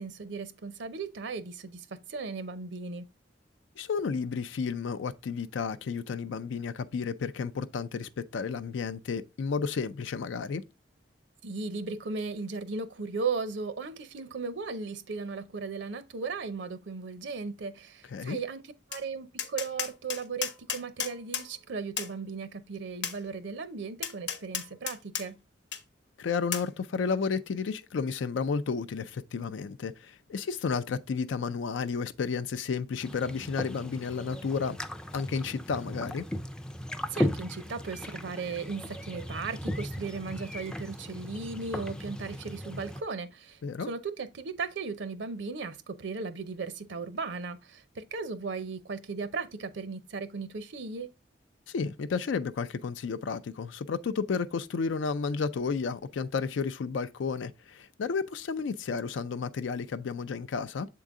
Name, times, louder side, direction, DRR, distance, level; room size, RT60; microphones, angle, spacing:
voice 1, 0.0-3.1 11.4-25.4 37.1-51.1, right 4 dB, 70° right, 0.6 m, -36 dB
voice 2, 3.8-10.6 18.1-18.4 26.2-34.8 35.1-36.3 43.6-43.9 51.7-60.9, left 5 dB, 85° left, 0.4 m, -32 dB
Tap, 18.9-19.0 19.4-21.5 22.0-22.1 23.0-23.2 24.0-25.3 25.7-25.8 26.5-26.7, left 8 dB, 70° left, 0.9 m, -33 dB
sound 1, 33.0-43.0, equal, 5° left, 0.3 m, -37 dB
7.3 x 3.8 x 3.6 m
head